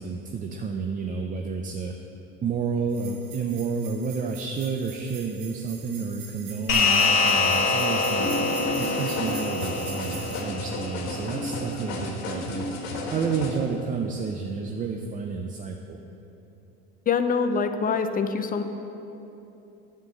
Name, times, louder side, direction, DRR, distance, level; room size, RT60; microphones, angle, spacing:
voice 1, 0.0-1.9 2.4-8.3 8.7-12.6 13.1-16.0, right 5 dB, 25° right, 3 dB, 0.5 m, -30 dB
sound 1, 2.9-10.4, right 6 dB, 75° right, 1.5 m, -43 dB
sound 2, 6.7-11.3, left 4 dB, 55° left, 1.9 m, -25 dB
sound 3, 8.1-13.6, left 2 dB, 80° left, 1.6 m, -32 dB
voice 2, 17.1-18.6, left 5 dB, 30° left, 8 dB, 0.6 m, -24 dB
9.4 x 4.5 x 7.5 m, 3.0 s
supercardioid pair, 105°, 30 cm